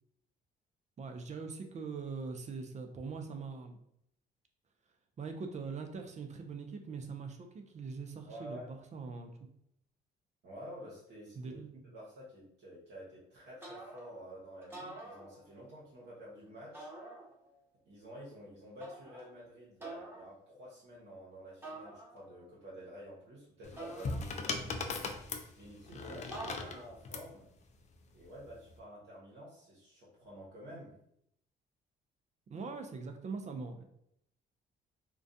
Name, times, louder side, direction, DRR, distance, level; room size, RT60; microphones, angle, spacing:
voice 1, 1.0-3.8 5.2-9.5 11.4-12.0 32.5-33.8, right 4 dB, 40° right, 6 dB, 0.4 m, -42 dB
voice 2, 8.3-8.7 10.4-11.6 11.9-16.9 17.9-24.9 25.4-27.5 28.1-30.9, equal, 65° right, -6 dB, 0.9 m, -50 dB
sound 1, 13.6-14.2 14.6-15.8 16.7-17.6 18.8-19.3 19.8-20.3 21.6-22.5 23.8-24.7 26.3-27.1, right 2 dB, 10° right, 1.0 m, -47 dB
sound 2, 23.6-27.3 28.4-28.7, left 3 dB, 40° left, 0.4 m, -39 dB
2.3 x 2.2 x 2.6 m, 0.73 s
supercardioid pair, 70°, 19 cm